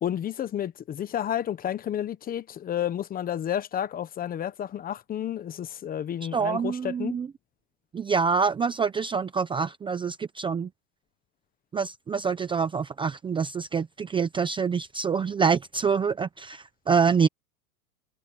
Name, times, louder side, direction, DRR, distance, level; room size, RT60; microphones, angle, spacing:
voice 1, 0.0-7.2, left 10 dB, 20° left, 1.1 m, -31 dB
voice 2, 6.3-7.3 7.9-10.7 11.7-17.3, right 6 dB, 10° right, 0.8 m, -26 dB
supercardioid pair, 140°, 46 cm